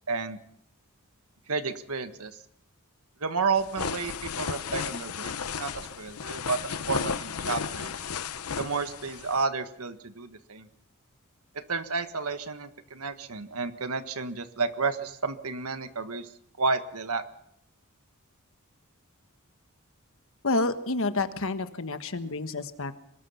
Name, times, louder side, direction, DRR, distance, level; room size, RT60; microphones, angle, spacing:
voice 1, 0.1-0.4 1.5-2.3 3.2-6.6 6.9-7.9 8.6-10.7 11.7-16.3 16.6-17.2, right 4 dB, 85° right, 9 dB, 1.6 m, -31 dB
sound 1, 3.6-9.4, left 6 dB, 85° left, 0.9 m, -34 dB
voice 2, 20.4-23.0, left 2 dB, 65° left, 9 dB, 1.4 m, -29 dB
24.5 x 20.0 x 5.8 m, 0.71 s
head